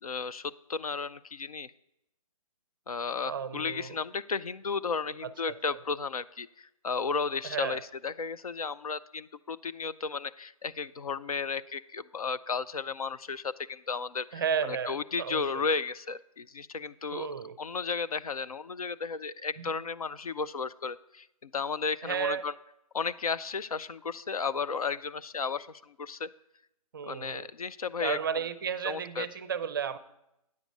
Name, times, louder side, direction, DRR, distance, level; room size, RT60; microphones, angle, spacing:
voice 1, 0.0-1.7 2.9-17.3 17.6-22.5 22.9-26.3 27.0-28.2 28.8-29.3, left 5 dB, 70° left, 14 dB, 0.5 m, -34 dB
voice 2, 3.2-4.0 5.2-5.6 7.4-7.8 14.3-15.7 17.1-17.6 19.6-19.7 22.0-22.4 26.9-27.5 28.0-30.0, right 7 dB, 35° right, 14 dB, 0.5 m, -33 dB
9.4 x 6.9 x 5.2 m, 0.86 s
figure-of-eight pair, 140°, 19 cm